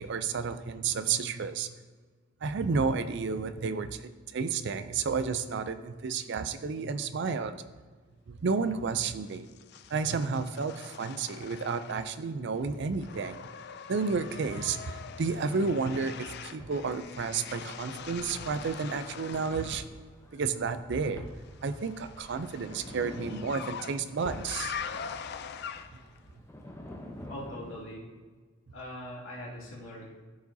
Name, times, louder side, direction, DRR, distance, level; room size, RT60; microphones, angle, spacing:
voice 1, 0.0-1.7 2.4-7.6 8.3-9.5 9.9-13.5 13.9-19.8 20.3-21.2 21.6-24.8, right 5 dB, 60° right, 11 dB, 0.4 m, -31 dB
sound 1, 9.3-12.3 12.6-19.9 21.4-26.2, left 7 dB, 55° left, 0.4 m, -43 dB
sound 2, 14.4-27.8, left 1 dB, 15° left, 0.8 m, -48 dB
voice 2, 27.3-28.1 28.7-30.1, left 1 dB, 75° left, -6 dB, 2.5 m, -41 dB
13.0 x 4.8 x 2.7 m, 1.4 s
head